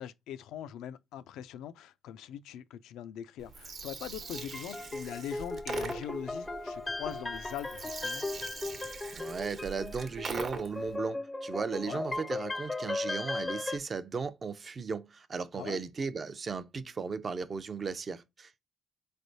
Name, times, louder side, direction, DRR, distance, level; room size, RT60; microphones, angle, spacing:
voice 1, 0.0-8.3 11.8-12.0 15.5-15.8, left 10 dB, 90° left, 0.3 m, -42 dB
Gurgling, 3.4-10.9, right 4 dB, 55° right, 1.0 m, -42 dB
sound 1, 4.2-13.8, left 2 dB, 15° left, 0.4 m, -37 dB
voice 2, 9.1-18.6, right 5 dB, 40° right, 0.5 m, -36 dB
4.3 x 3.3 x 2.6 m
cardioid pair, 90°, 0 cm